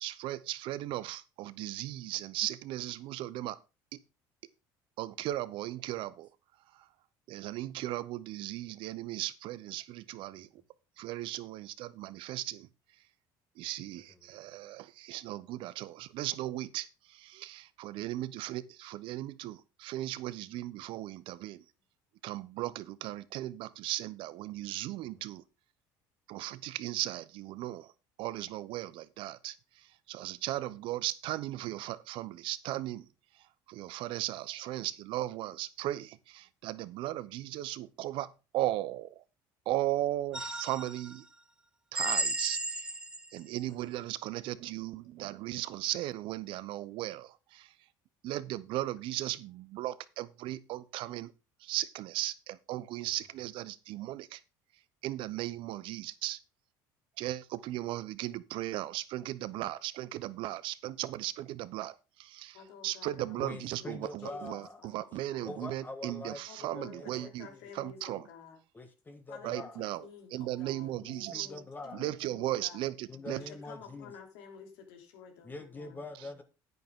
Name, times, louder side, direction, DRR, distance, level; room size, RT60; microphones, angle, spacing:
voice 1, 0.0-3.6 5.0-6.3 7.3-10.5 11.0-12.7 13.6-16.9 17.1-21.6 22.2-25.4 26.3-27.9 28.2-29.5 30.1-33.1 33.7-39.1 39.7-41.2 41.9-42.8 43.3-47.7 48.2-51.3 51.6-54.4 55.0-56.4 57.2-61.9 62.2-62.6 62.8-67.5 67.8-68.2 69.4-71.5 71.9-73.4, right 15 dB, 70° right, 0.8 m, -37 dB
voice 2, 14.0-14.4 55.5-55.7 63.4-64.8 65.1-67.7 68.7-69.8 71.0-72.1 73.1-74.1 75.4-76.4, left 2 dB, 20° left, 1.5 m, -45 dB
sound 1, 40.3-41.1 41.9-43.4, right 2 dB, 10° right, 1.0 m, -34 dB
voice 3, 62.5-65.5 66.5-68.6 69.3-72.9 73.3-76.0, left 6 dB, 85° left, 3.2 m, -51 dB
9.5 x 9.5 x 3.7 m
supercardioid pair, 105°, 9 cm